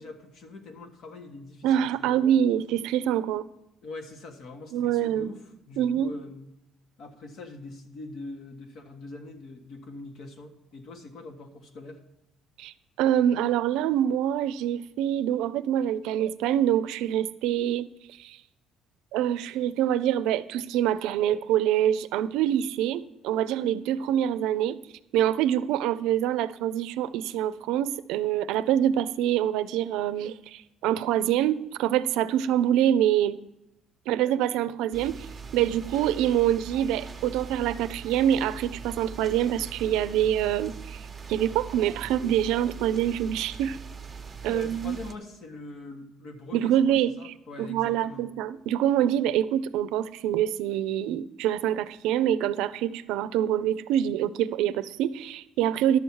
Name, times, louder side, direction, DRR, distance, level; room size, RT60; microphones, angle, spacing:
voice 1, 0.0-2.2 3.8-6.5 7.0-12.0 44.5-48.3, left 3 dB, 60° left, 5 dB, 1.4 m, -43 dB
voice 2, 1.6-3.4 4.7-5.3 5.8-6.1 12.6-17.9 18.2-18.4 19.1-24.8 25.1-33.4 34.1-35.3 35.5-43.8 44.4-45.0 46.5-56.0, right 11 dB, 90° right, 13 dB, 0.5 m, -25 dB
sound 1, 34.9-45.2, right 5 dB, 20° right, 0.9 m, -41 dB
11.5 x 7.1 x 4.6 m, 0.91 s
cardioid pair, 125°, 0 cm